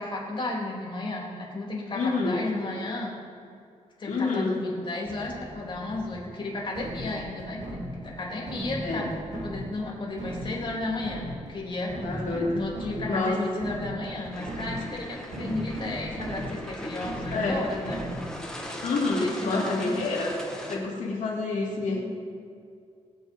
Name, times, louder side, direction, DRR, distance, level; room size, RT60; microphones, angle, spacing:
voice 1, 0.0-3.1 4.0-11.9 12.3-18.0 19.2-19.9, left 2 dB, 40° left, -3 dB, 3.2 m, -34 dB
voice 2, 1.9-2.4 4.1-4.6 8.8-9.0 12.0-12.6 13.1-13.4 17.3-17.6 18.8-20.3 20.7-22.0, left 3 dB, 80° left, -3 dB, 3.0 m, -27 dB
sound 1, 5.0-18.5, right 1 dB, 70° right, 2.3 m, -38 dB
sound 2, 14.3-20.8, left 1 dB, 5° left, 2.1 m, -39 dB
20.5 x 7.3 x 5.5 m, 2.3 s
cardioid pair, 110°, 13 cm